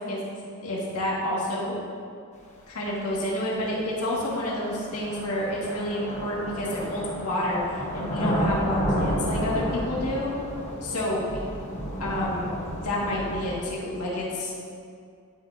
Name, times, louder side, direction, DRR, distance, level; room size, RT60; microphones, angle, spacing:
voice 1, 0.1-1.8 2.7-10.3 10.8-11.2 12.0-12.5 12.8-14.6, left 1 dB, 85° left, -6 dB, 1.9 m, -29 dB
sound 1, 3.0-3.1 4.1-13.6, equal, 30° left, 1.1 m, -31 dB
11.5 x 6.3 x 2.7 m, 2.3 s
head